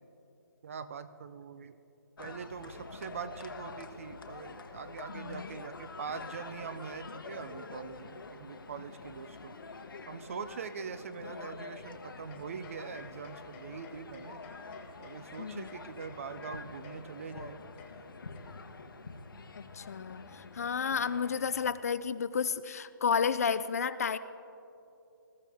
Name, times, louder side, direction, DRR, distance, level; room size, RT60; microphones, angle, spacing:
voice 1, 0.6-1.8 2.2-9.6 10.1-14.4 15.0-17.6, right 6 dB, 40° right, 13 dB, 0.6 m, -43 dB
sound 1, 2.2-21.7, left 4 dB, 80° left, 1.2 m, -47 dB
voice 2, 5.1-5.5 15.4-15.7 19.6-24.2, left 6 dB, 45° left, 14 dB, 0.4 m, -32 dB
sound 2, 12.3-18.9, left 6 dB, 15° left, 0.8 m, -55 dB
20.5 x 14.0 x 3.5 m, 2.9 s
hypercardioid pair, 165°, 11 cm